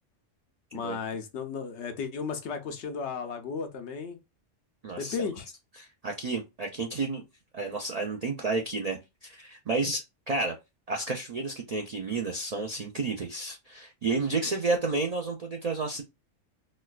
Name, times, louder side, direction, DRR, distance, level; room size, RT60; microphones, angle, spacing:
voice 1, 0.7-4.2 5.0-5.5, left 5 dB, 70° left, 0.9 m, -34 dB
voice 2, 4.8-5.2 5.8-7.2 7.5-10.5 10.9-16.0, right 3 dB, 60° right, 0.4 m, -31 dB
4.2 x 2.2 x 2.3 m
omnidirectional pair, 1.2 m